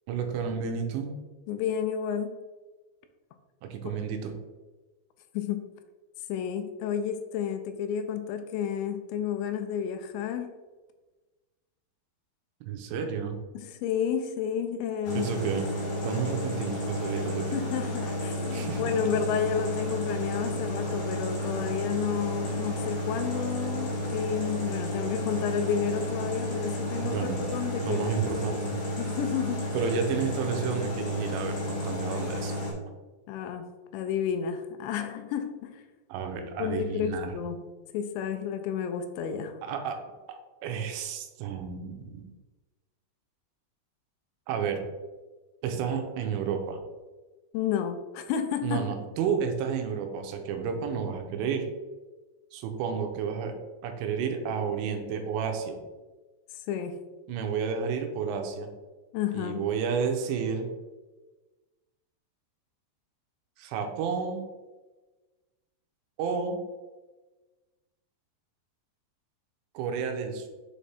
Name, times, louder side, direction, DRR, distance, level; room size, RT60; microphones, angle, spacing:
voice 1, 0.1-1.1 3.6-4.3 12.7-13.4 15.1-15.7 16.0-17.6 18.5-18.8 27.0-27.5 27.8-28.8 29.7-32.5 36.1-37.4 39.6-40.0 40.3-42.3 44.5-44.8 45.6-46.8 48.6-51.7 52.5-53.5 53.8-55.8 57.3-58.7 59.3-60.7 63.6-64.4 66.2-66.6 69.7-70.5, right 6 dB, 85° right, 4 dB, 2.8 m, -31 dB
voice 2, 1.5-2.4 5.3-5.6 6.3-10.5 13.5-15.3 17.5-28.1 29.0-29.8 32.1-32.2 33.3-35.8 36.6-37.6 37.9-39.6 47.5-48.8 56.5-57.0 59.1-59.6, left 8 dB, 85° left, 7 dB, 2.8 m, -31 dB
sound 1, 15.0-32.7, equal, 60° left, 3.4 m, -32 dB
7.2 x 3.4 x 4.2 m, 1.2 s
omnidirectional pair, 5.3 m